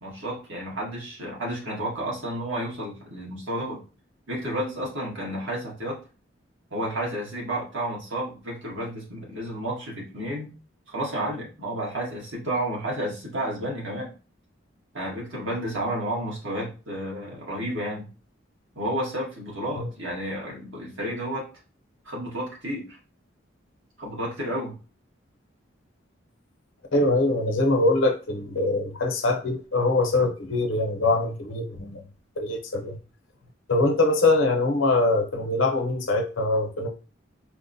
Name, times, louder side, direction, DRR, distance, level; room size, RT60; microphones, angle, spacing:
voice 1, 0.0-3.8 4.3-6.0 6.7-10.5 10.9-14.1 14.9-18.1 18.7-21.5 22.0-23.0 24.0-24.8, right 1 dB, 80° right, -4 dB, 1.6 m, -31 dB
voice 2, 26.9-32.0 32.4-33.0 33.7-36.9, left 2 dB, 90° left, 3 dB, 0.7 m, -23 dB
4.3 x 2.1 x 2.6 m, 0.35 s
head